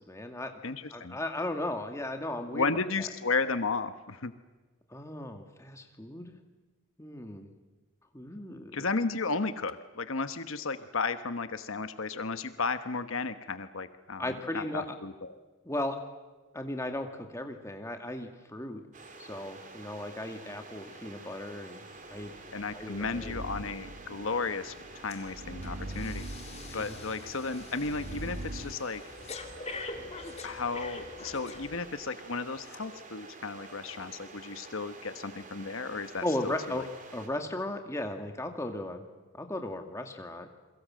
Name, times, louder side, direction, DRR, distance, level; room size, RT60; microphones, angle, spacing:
voice 1, 0.0-0.5 0.9-2.7 4.9-6.4 7.0-7.5 8.1-8.8 14.2-15.0 15.6-16.0 16.5-18.8 19.2-21.8 22.1-22.3 22.7-23.3 26.6-27.0 36.2-36.9 37.1-39.0 39.3-40.5, left 1 dB, 15° left, 5 dB, 2.2 m, -36 dB
voice 2, 0.6-1.2 2.5-4.3 8.7-14.2 14.5-15.4 22.5-26.3 26.7-29.0 30.4-36.8, left 4 dB, 70° left, 11 dB, 1.1 m, -34 dB
sound 1, 18.9-37.3, right 3 dB, 35° right, 3.4 m, -49 dB
sound 2, 22.3-28.7, right 1 dB, 75° right, 2.1 m, -42 dB
Breathing, 25.1-25.3 25.6-32.1 32.6-32.8, left 3 dB, 30° left, 2.2 m, -44 dB
29.0 x 22.5 x 7.7 m, 1.2 s
head